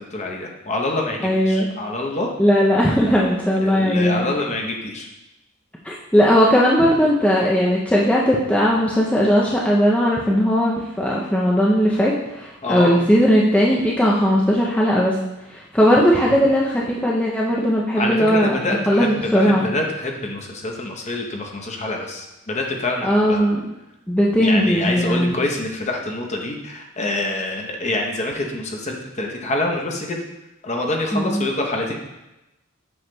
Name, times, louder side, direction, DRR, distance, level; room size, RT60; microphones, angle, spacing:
voice 1, 0.0-2.3 3.6-5.1 12.6-12.9 18.0-23.4 24.4-30.2 30.6-32.0, left 2 dB, 35° left, 1 dB, 0.8 m, -26 dB
voice 2, 1.2-1.7 2.4-4.3 5.8-15.2 15.5-18.6 18.9-19.7 23.0-23.6 24.1-25.3 31.1-31.4, equal, 5° left, -4 dB, 0.5 m, -18 dB
7.7 x 5.7 x 2.2 m, 0.96 s
head